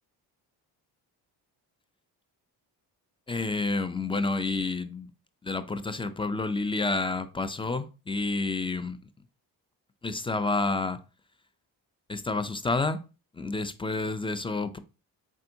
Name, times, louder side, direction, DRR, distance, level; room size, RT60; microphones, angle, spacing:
voice 1, 3.3-5.1 5.4-9.0 10.0-11.0 12.1-13.0 13.3-14.8, left 3 dB, 15° left, 0.3 m, -29 dB
4.2 x 3.6 x 2.6 m
supercardioid pair, 50°, 47 cm